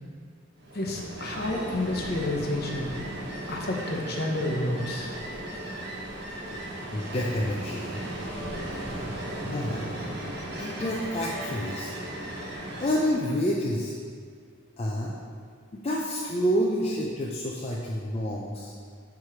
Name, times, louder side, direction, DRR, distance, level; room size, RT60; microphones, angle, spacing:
Ocean, 0.6-13.4, right 1 dB, 55° right, 1.1 m, -36 dB
voice 1, 0.7-2.9 3.5-5.2, left 1 dB, 50° left, 0 dB, 0.8 m, -30 dB
voice 2, 6.9-7.9 8.4-8.8 9.4-9.9 10.6-11.9 12.8-13.9 14.8-15.1 15.7-18.7, equal, 30° left, -3 dB, 0.5 m, -29 dB
4.8 x 4.7 x 5.7 m, 2.1 s
head